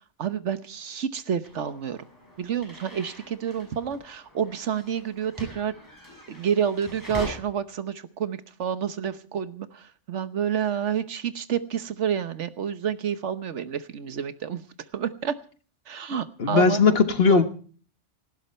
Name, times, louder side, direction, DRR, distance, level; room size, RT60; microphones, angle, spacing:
voice 1, 0.2-2.0 2.4-5.7 6.3-14.6 14.9-15.4 15.9-17.4, right 8 dB, 75° right, 12 dB, 1.3 m, -29 dB
sound 1, 1.4-7.3, equal, 15° left, 6.9 m, -43 dB
voice 2, 16.4-17.4, left 4 dB, 55° left, 9 dB, 1.5 m, -18 dB
18.5 x 16.0 x 4.3 m, 0.42 s
omnidirectional pair, 1.2 m